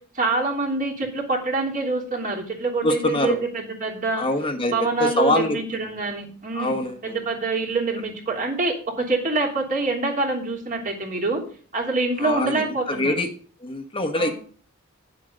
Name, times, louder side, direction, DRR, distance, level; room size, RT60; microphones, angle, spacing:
voice 1, 0.1-4.3 4.7-6.8 7.0-11.4 11.7-13.1 14.1-14.3, right 3 dB, 40° right, 0 dB, 3.2 m, -25 dB
voice 2, 2.8-3.4 4.1-5.6 6.5-7.2 12.2-13.3 13.6-14.3, left 1 dB, 25° left, 5 dB, 1.2 m, -24 dB
10.5 x 7.7 x 5.1 m, 0.44 s
head